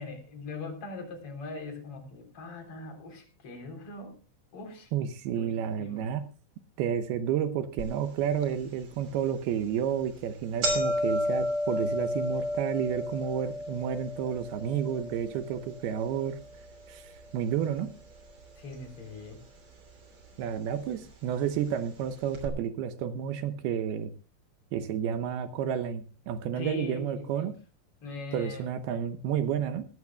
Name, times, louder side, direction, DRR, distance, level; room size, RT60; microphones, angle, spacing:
voice 1, 0.0-4.1 4.5-4.9 5.4-6.1 18.6-19.4 20.9-21.0 26.5-27.5 28.0-28.7, left 3 dB, 30° left, 5 dB, 3.9 m, -41 dB
voice 2, 4.9-6.3 6.8-16.4 16.9-17.9 20.4-24.1 24.7-27.5 28.3-29.9, right 8 dB, 80° right, 11 dB, 2.4 m, -31 dB
sound 1, 7.8-7.9 8.4-8.5 9.3-9.5 9.9-10.0 10.2-18.4 18.7-19.5 20.3-20.4 21.3-21.4 21.7-21.8 22.3-22.5, equal, 35° right, 3.3 m, -33 dB
19.5 x 15.5 x 2.2 m, 0.34 s
omnidirectional pair, 5.6 m